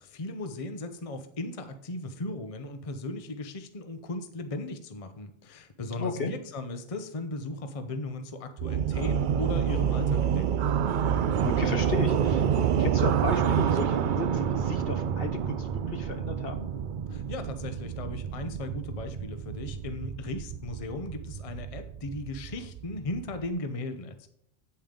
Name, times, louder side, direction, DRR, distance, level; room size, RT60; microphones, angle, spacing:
voice 1, 0.0-10.6 17.1-24.3, left 2 dB, 35° left, 8 dB, 0.9 m, -37 dB
voice 2, 5.9-6.3 11.4-16.7, left 4 dB, 55° left, 7 dB, 1.2 m, -34 dB
sound 1, 8.6-23.5, right 8 dB, 60° right, 0.5 m, -28 dB
8.7 x 8.5 x 3.8 m, 0.70 s
omnidirectional pair, 1.2 m